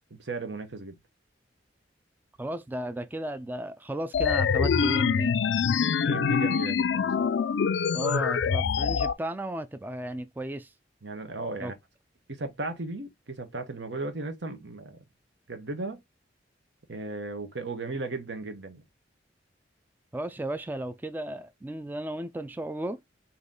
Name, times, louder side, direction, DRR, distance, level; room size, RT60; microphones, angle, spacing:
voice 1, 0.2-0.9 6.0-7.3 11.0-11.7 12.3-15.0 15.5-16.0 16.9-18.8, right 3 dB, 75° right, 1.1 m, -36 dB
voice 2, 2.4-5.4 7.9-10.7 11.6-11.7 20.1-23.0, right 1 dB, 10° right, 0.3 m, -34 dB
sound 1, 4.1-9.1, left 6 dB, 90° left, 0.4 m, -25 dB
4.0 x 2.9 x 3.7 m
head